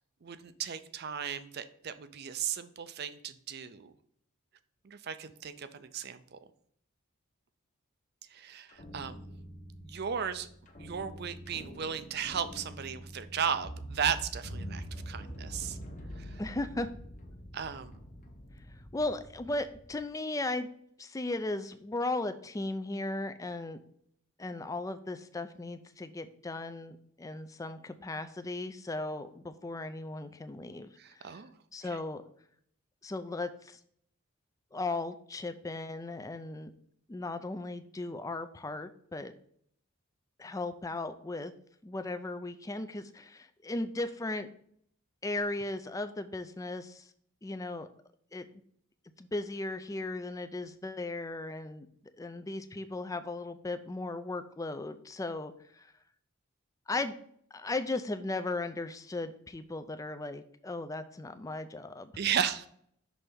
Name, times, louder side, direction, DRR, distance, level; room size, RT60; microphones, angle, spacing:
voice 1, 0.2-3.9 4.8-6.4 8.3-9.3 9.8-10.5 10.8-15.8 16.2-16.4 17.5-18.0 31.0-31.5 62.1-62.7, right 8 dB, 50° right, 12 dB, 0.4 m, -35 dB
sound 1, 8.7-20.0, equal, 40° left, 0.9 m, -45 dB
voice 2, 16.4-16.9 18.9-20.7 21.0-23.8 24.4-30.9 31.1-31.4 31.7-32.2 33.0-33.8 34.7-36.7 37.1-39.3 40.4-41.5 41.8-44.5 45.2-47.1 47.4-47.9 48.3-48.4 49.2-51.9 52.2-55.9 56.9-57.1 57.5-62.1, left 2 dB, 15° left, 10 dB, 0.4 m, -36 dB
6.2 x 3.3 x 5.1 m, 0.66 s
head